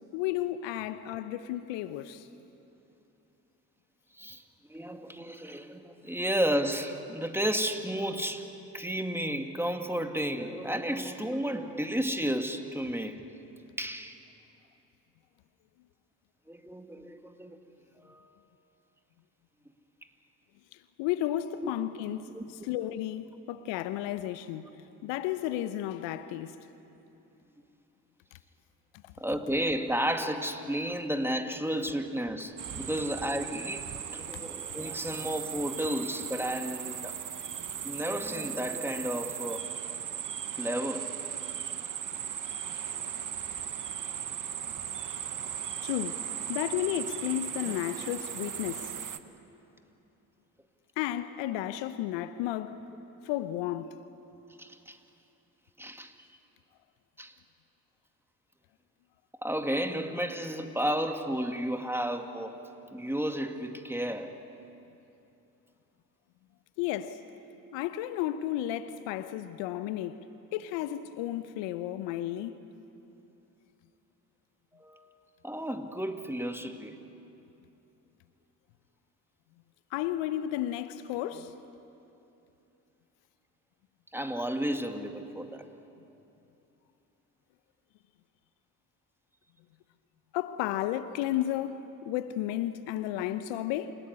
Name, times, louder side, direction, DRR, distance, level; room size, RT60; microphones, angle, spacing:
voice 1, 0.1-2.3 21.0-22.3 22.6-24.7 25.0-26.5 34.3-34.4 42.9-43.0 45.8-46.2 46.5-48.9 51.0-52.8 53.2-53.9 66.8-67.2 67.7-70.2 70.5-72.6 79.9-81.5 90.3-94.0, left 13 dB, 75° left, 0.9 m, -33 dB
voice 2, 4.7-8.5 8.7-13.2 13.8-14.1 16.5-17.6 18.0-18.3 21.6-21.7 22.3-22.4 29.2-37.2 37.8-39.7 40.6-41.2 47.6-47.7 54.6-55.0 55.8-56.1 57.2-57.3 59.4-62.5 62.9-64.4 74.7-75.1 75.4-77.0 84.1-85.7, equal, 5° right, 2.4 m, -32 dB
sound 1, 32.6-49.2, right 8 dB, 45° right, 1.3 m, -37 dB
29.0 x 17.5 x 9.8 m
hypercardioid pair, 45°, 45 cm